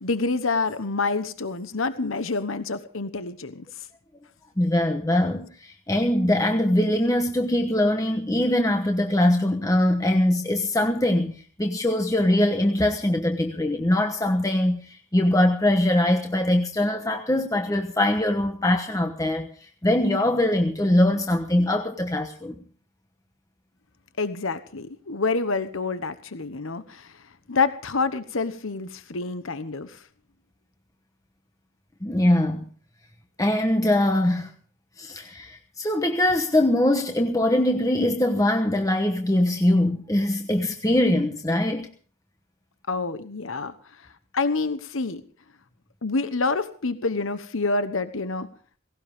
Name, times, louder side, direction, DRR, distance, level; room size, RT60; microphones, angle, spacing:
voice 1, 0.0-3.6 24.2-27.1 27.5-30.0 42.9-43.7 44.3-45.2 46.0-48.5, left 3 dB, 75° left, 11 dB, 1.1 m, -27 dB
voice 2, 4.6-19.5 19.8-22.6 32.0-32.7 33.4-34.5 35.0-41.9, left 1 dB, 15° left, 4 dB, 1.1 m, -22 dB
18.0 x 17.5 x 3.6 m, 0.43 s
head